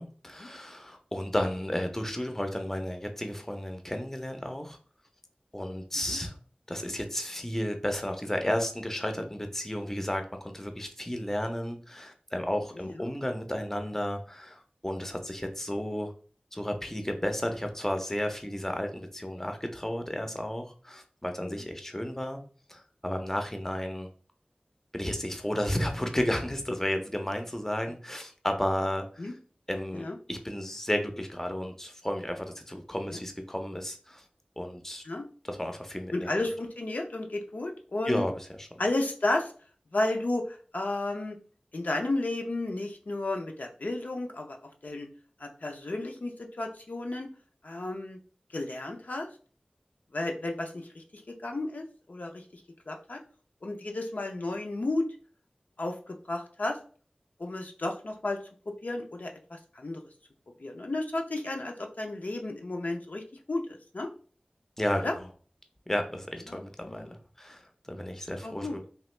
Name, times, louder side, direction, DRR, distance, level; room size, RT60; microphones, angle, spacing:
voice 1, 0.0-4.8 5.5-6.4 6.7-16.1 16.5-22.4 22.7-24.1 24.9-29.3 29.7-34.2 34.6-35.0 35.4-36.3 38.1-38.7 64.8-65.3 65.9-68.9, left 1 dB, 15° left, 5 dB, 0.5 m, -33 dB
voice 2, 36.1-38.3 38.8-39.5 39.9-41.4 41.7-44.6 44.8-45.1 45.4-47.3 47.6-48.2 48.5-49.3 50.1-52.6 52.9-53.2 53.6-55.0 55.8-56.8 57.4-58.4 58.8-60.0 60.6-63.2 63.5-63.6 63.9-64.1 65.0-65.1 66.5-66.6 66.9-67.0 68.4-68.8, left 2 dB, 70° left, 2 dB, 0.5 m, -32 dB
3.0 x 2.3 x 3.1 m, 0.41 s
wide cardioid pair, 45°, 3 cm